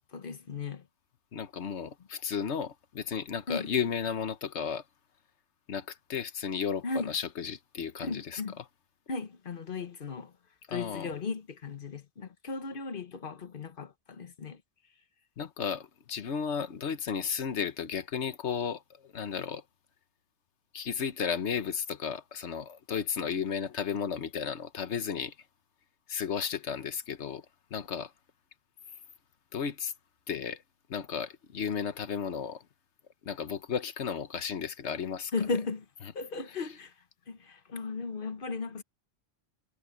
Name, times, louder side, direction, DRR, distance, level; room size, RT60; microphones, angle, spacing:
voice 1, 0.1-0.8 3.5-3.7 6.8-7.1 8.0-8.6 9.1-10.3 10.7-14.6 35.3-35.8 36.1-36.9 37.3-38.8, left 4 dB, 50° left, 1.3 m, -36 dB
voice 2, 1.3-4.8 5.7-8.4 10.7-11.1 15.4-19.6 20.7-25.3 26.1-27.4 27.7-28.1 29.5-29.9 30.3-30.6 30.9-32.6 33.2-35.3, left 7 dB, 90° left, 1.4 m, -34 dB
omnidirectional pair, 1.1 m